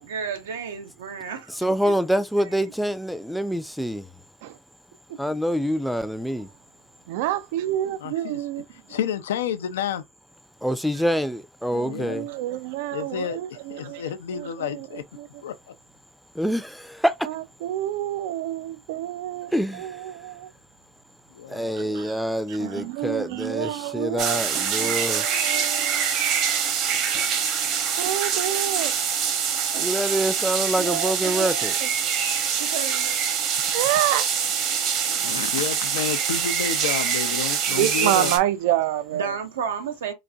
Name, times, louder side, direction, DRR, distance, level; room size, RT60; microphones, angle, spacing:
voice 1, 0.0-1.6 1.8-1.9 2.4-2.6 5.1-5.2 32.6-33.2 39.2-40.1, right 7 dB, 90° right, 0.8 m, -32 dB
voice 2, 1.6-4.1 5.2-6.5 10.6-12.3 16.4-17.2 19.5-20.0 21.5-25.2 29.8-31.7, equal, ahead, 0.5 m, -26 dB
voice 3, 7.1-8.6 11.7-14.0 14.3-14.9 15.2-15.3 17.2-20.5 21.9-22.2 22.5-26.6 28.0-28.9 30.8-31.9 33.7-34.2 37.7-39.3, right 13 dB, 70° right, 0.3 m, -28 dB
voice 4, 8.0-10.0 11.8-12.3 12.9-15.0 15.4-15.5 21.3-21.9 34.9-38.4, left 9 dB, 90° left, 0.4 m, -31 dB
sound 1, 24.2-38.4, right 7 dB, 50° right, 0.9 m, -25 dB
4.0 x 2.5 x 2.3 m
supercardioid pair, 100°, 0 cm